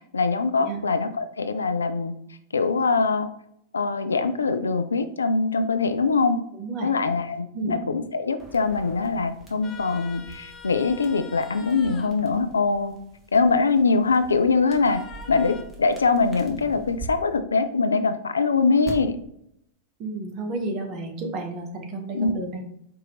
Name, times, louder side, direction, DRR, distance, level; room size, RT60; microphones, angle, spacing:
voice 1, 0.1-2.1 2.5-3.3 3.7-6.4 6.8-12.9 13.3-15.0 15.3-19.2 22.1-22.3, left 4 dB, 75° left, 10 dB, 0.3 m, -23 dB
voice 2, 6.5-6.9 7.5-7.8 20.0-22.6, right 2 dB, 35° right, 3 dB, 1.0 m, -31 dB
sound 1, 8.4-17.1 18.8-18.9, right 3 dB, 5° left, 1.2 m, -46 dB
sound 2, 9.6-12.1 14.7-15.6, left 5 dB, 25° left, 0.5 m, -44 dB
4.7 x 2.8 x 3.8 m, 0.73 s
figure-of-eight pair, 90°, 0 cm